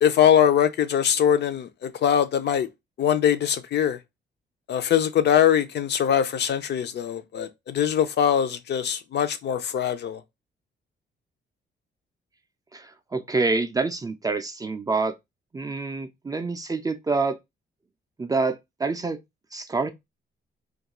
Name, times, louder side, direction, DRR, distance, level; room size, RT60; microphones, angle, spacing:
voice 1, 0.0-2.7 3.0-4.0 4.7-10.2, left 9 dB, 60° left, 0.4 m, -22 dB
voice 2, 12.7-15.2 15.5-17.4 18.2-19.2 19.5-19.9, right 3 dB, 20° right, 0.3 m, -27 dB
2.3 x 2.2 x 2.9 m
cardioid pair, 110°, 19 cm